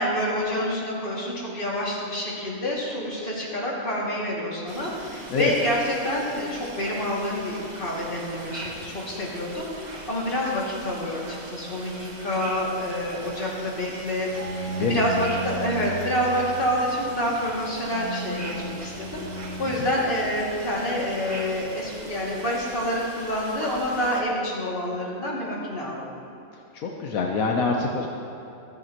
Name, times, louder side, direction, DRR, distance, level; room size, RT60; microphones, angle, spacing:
voice 1, 0.0-26.2, equal, 40° left, -5 dB, 2.5 m, -28 dB
sound 1, 4.7-24.2, right 2 dB, 35° right, 1.1 m, -41 dB
Bowed string instrument, 14.3-21.4, right 1 dB, 85° right, 1.7 m, -35 dB
voice 2, 26.7-28.1, left 4 dB, 80° left, 1 dB, 1.3 m, -25 dB
14.5 x 14.0 x 3.0 m, 2.9 s
omnidirectional pair, 1.5 m